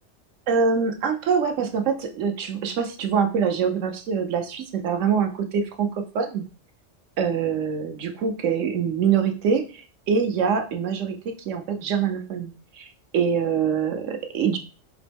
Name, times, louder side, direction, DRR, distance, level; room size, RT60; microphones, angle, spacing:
voice 1, 0.5-6.4 7.2-14.6, right 6 dB, 75° right, 5 dB, 1.1 m, -24 dB
5.0 x 3.0 x 3.4 m, 0.35 s
omnidirectional pair, 1.3 m